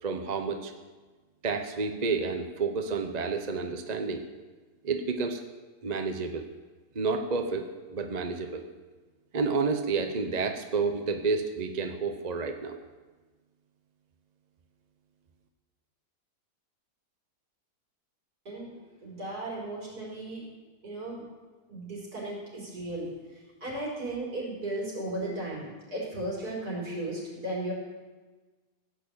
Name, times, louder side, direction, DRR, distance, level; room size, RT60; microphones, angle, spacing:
voice 1, 0.0-0.7 1.4-4.2 4.8-5.4 5.8-6.5 6.9-8.7 9.3-12.8, right 4 dB, 30° right, 6 dB, 0.9 m, -30 dB
voice 2, 18.5-18.8 19.0-20.5 20.8-21.2 21.7-27.7, right 1 dB, 70° right, -4 dB, 5.4 m, -35 dB
16.5 x 6.9 x 8.4 m, 1.3 s
omnidirectional pair, 1.7 m